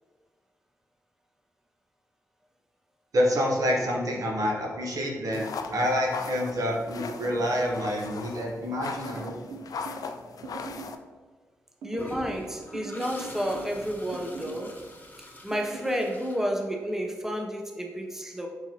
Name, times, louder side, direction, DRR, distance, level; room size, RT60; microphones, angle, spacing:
voice 1, 3.1-9.3, equal, 65° right, -1 dB, 1.0 m, -27 dB
sound 1, 5.3-11.0, left 5 dB, 70° left, 0.3 m, -39 dB
sound 2, 9.0-10.0 10.4-11.0 11.8-12.4 12.7-13.8 14.1-14.7 15.5-16.0, right 4 dB, 85° right, 0.5 m, -41 dB
voice 2, 11.8-14.7 15.4-18.5, equal, 5° right, 1 dB, 0.7 m, -31 dB
Toilet flush, 12.0-17.0, left 1 dB, 25° left, 0.8 m, -44 dB
4.3 x 3.9 x 2.8 m, 1.5 s
supercardioid pair, 45°, 7 cm